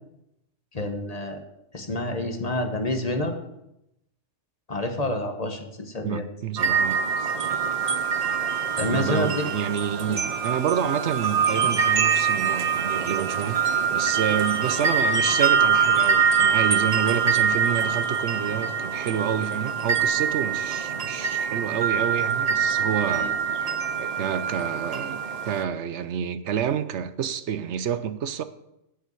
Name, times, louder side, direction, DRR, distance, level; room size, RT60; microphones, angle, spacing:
voice 1, 0.7-1.4 1.7-3.3 4.7-6.2 8.8-9.4 10.1-10.2 23.1-23.3, left 1 dB, 35° left, 1.2 m, -28 dB
voice 2, 6.0-7.3 8.8-23.6 23.9-28.4, right 8 dB, 75° right, 1.0 m, -28 dB
sound 1, 6.6-25.6, right 6 dB, 40° right, 0.7 m, -24 dB
8.3 x 8.1 x 7.8 m
omnidirectional pair, 1.2 m